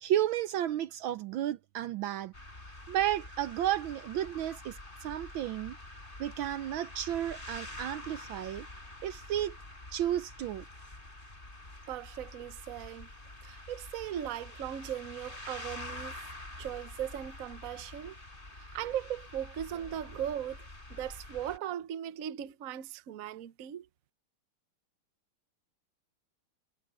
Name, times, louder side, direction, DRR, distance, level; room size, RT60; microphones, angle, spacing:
voice 1, 0.0-2.3 2.9-5.8 6.2-8.7 9.0-9.6 9.9-10.6, right 12 dB, 75° right, 1.3 m, -32 dB
sound 1, 2.3-21.6, left 2 dB, 25° left, 4.3 m, -47 dB
voice 2, 11.9-13.1 13.4-16.2 16.6-18.1 18.6-20.6 20.9-23.9, right 10 dB, 55° right, 1.0 m, -38 dB
omnidirectional pair, 2.4 m